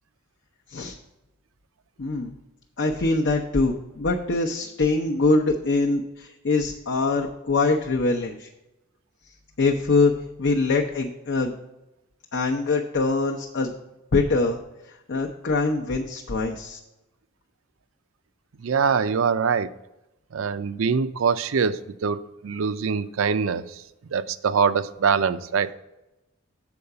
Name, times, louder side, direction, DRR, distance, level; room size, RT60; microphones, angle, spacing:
voice 1, 2.0-2.3 2.8-8.5 9.6-10.1 10.4-11.5 12.3-13.7 14.1-14.6 14.9-16.8, left 3 dB, 60° left, 0 dB, 0.7 m, -23 dB
voice 2, 18.6-19.7 20.3-22.2 22.4-23.6 24.1-25.7, right 6 dB, 70° right, 14 dB, 0.5 m, -23 dB
7.0 x 4.7 x 6.5 m, 0.96 s
head